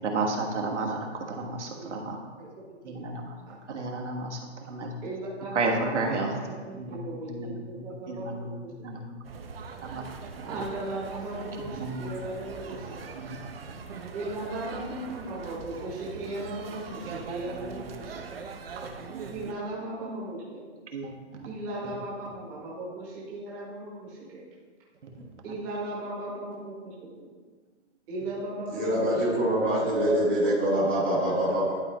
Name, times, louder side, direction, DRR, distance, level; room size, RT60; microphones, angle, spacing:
voice 1, 0.0-2.2 2.8-3.3 3.7-4.4 4.7-4.9 5.5-6.3 6.7-7.0 7.3-7.6 8.1-8.5 8.8-9.1 9.8-10.0 10.4-10.5 11.6-12.1 13.1-13.4 17.1-17.2 17.5-17.8 19.1-19.3 20.9-21.4, right 3 dB, 75° right, 0 dB, 1.5 m, -32 dB
voice 2, 5.0-8.7 10.4-13.1 14.1-18.4 19.3-20.8 21.4-24.4 25.4-27.2 28.1-29.3 29.7-30.8, right 2 dB, 10° right, -5 dB, 0.9 m, -36 dB
sound 1, 9.2-19.5, right 5 dB, 55° right, 0.7 m, -42 dB
voice 3, 28.7-31.8, right 1 dB, 10° left, -12 dB, 0.5 m, -25 dB
11.5 x 4.2 x 3.0 m, 1.4 s
hypercardioid pair, 170°, 35 cm